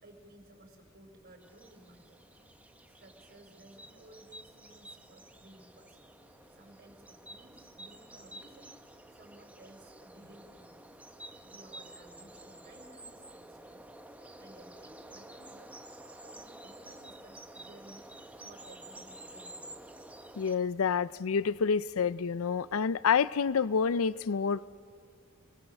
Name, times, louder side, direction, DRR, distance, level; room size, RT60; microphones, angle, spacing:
voice 1, 0.0-2.2 2.9-6.0 6.5-8.7 9.1-10.8 11.4-13.9 14.4-15.8 16.2-18.1 18.4-19.9, right 1 dB, 50° right, 4.4 m, -57 dB
sound 1, 1.4-20.6, right 1 dB, 5° right, 0.9 m, -51 dB
voice 2, 20.4-24.7, left 6 dB, 75° left, 0.5 m, -28 dB
28.5 x 21.0 x 6.5 m
head